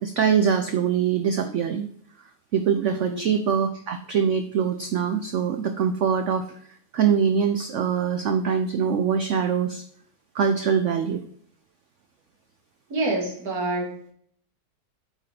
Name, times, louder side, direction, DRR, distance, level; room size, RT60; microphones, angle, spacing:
voice 1, 0.0-1.9 2.5-6.6 6.9-9.8 10.3-11.2, right 7 dB, 80° right, 7 dB, 0.6 m, -23 dB
voice 2, 2.9-3.3 12.9-14.1, right 2 dB, 60° right, 0 dB, 2.2 m, -28 dB
7.8 x 4.9 x 2.8 m, 0.63 s
omnidirectional pair, 1.9 m